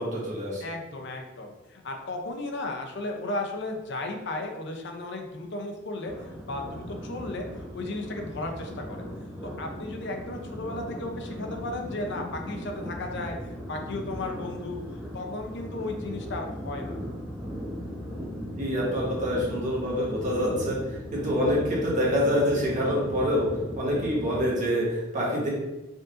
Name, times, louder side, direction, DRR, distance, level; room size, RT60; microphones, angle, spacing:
voice 1, 0.0-0.6 18.1-23.5 23.8-25.5, equal, 40° right, -5 dB, 1.4 m, -26 dB
voice 2, 0.6-9.0 9.6-17.0, left 2 dB, 65° left, 3 dB, 0.7 m, -35 dB
sound 1, 6.1-24.4, equal, 5° right, 0.9 m, -38 dB
5.2 x 3.8 x 2.6 m, 1.0 s
head